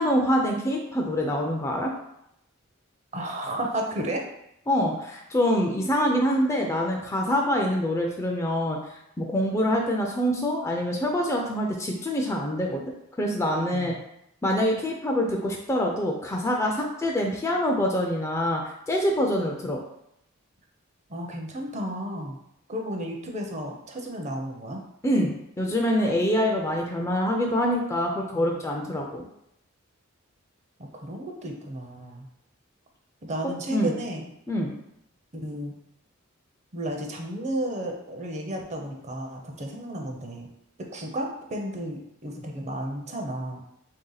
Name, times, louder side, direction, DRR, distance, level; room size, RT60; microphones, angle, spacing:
voice 1, 0.0-1.9 4.7-8.8 9.2-12.8 13.2-13.9 14.4-18.6 18.9-19.8 25.0-29.2 33.7-34.0 34.5-34.8, equal, 15° left, 1 dB, 0.3 m, -25 dB
voice 2, 3.1-4.2 13.7-14.0 21.1-22.4 22.7-24.8 28.3-28.5 30.9-32.3 33.2-34.3 35.3-35.7 36.7-40.5 40.8-43.6, right 1 dB, 35° right, 2 dB, 0.5 m, -33 dB
3.2 x 2.7 x 3.9 m, 0.78 s
head